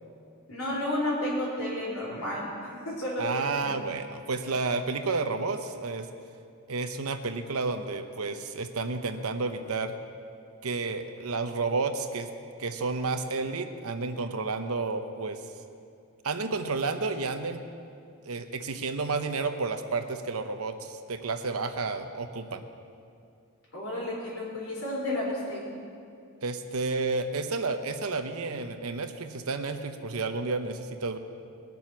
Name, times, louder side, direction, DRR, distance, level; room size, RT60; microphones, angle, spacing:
voice 1, 0.5-3.3 3.5-3.8 23.7-25.7, left 1 dB, 70° left, -3 dB, 4.2 m, -32 dB
voice 2, 3.2-6.1 6.7-9.9 10.6-12.3 12.6-15.4 16.2-17.6 18.2-22.7 26.4-31.2, right 3 dB, 75° right, 7 dB, 0.9 m, -31 dB
20.5 x 7.0 x 6.0 m, 2.5 s
head